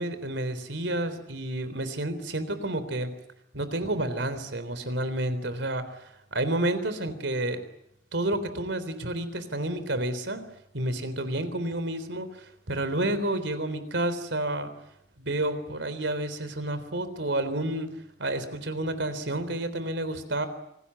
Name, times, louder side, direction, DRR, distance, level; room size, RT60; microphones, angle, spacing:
voice 1, 0.0-3.1 3.5-7.6 8.1-10.4 10.7-14.7 15.2-17.9 18.2-20.5, right 1 dB, 80° right, 12 dB, 3.7 m, -30 dB
27.5 x 19.5 x 9.8 m, 0.80 s
head